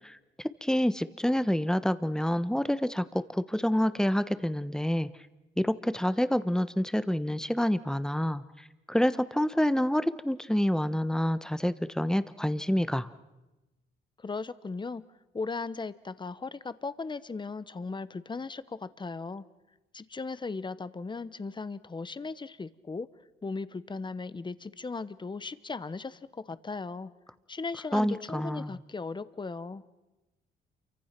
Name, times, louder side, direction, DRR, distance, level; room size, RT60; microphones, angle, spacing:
voice 1, 0.6-5.1 5.6-8.4 8.9-13.1 27.9-28.7, equal, 5° left, 13 dB, 1.1 m, -27 dB
voice 2, 14.2-15.0 15.3-19.4 19.9-23.1 23.4-27.1 27.5-29.8, left 4 dB, 25° left, 15 dB, 1.1 m, -37 dB
28.5 x 24.5 x 6.0 m, 1.0 s
cardioid pair, 90°, 20 cm